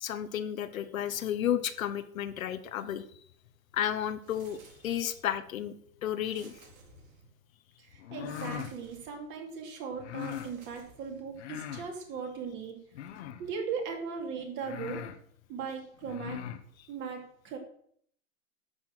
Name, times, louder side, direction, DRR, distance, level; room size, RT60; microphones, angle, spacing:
voice 1, 0.0-3.0 3.7-5.7 6.0-6.5, left 10 dB, 75° left, 11 dB, 1.2 m, -32 dB
sound 1, 4.2-5.3 6.2-7.4 8.2-9.3 10.1-11.4, right 4 dB, 75° right, 4.3 m, -57 dB
voice 2, 7.8-12.8 13.2-15.1 15.5-16.5 16.9-17.6, right 5 dB, 25° right, 3 dB, 2.7 m, -38 dB
sound 2, 8.0-8.7 10.0-10.5 11.3-11.9 12.9-13.5 14.2-14.3 14.6-15.2 16.0-16.6, left 10 dB, 55° left, 1.3 m, -40 dB
11.0 x 7.1 x 7.5 m, 0.65 s
hypercardioid pair, 155°, 42 cm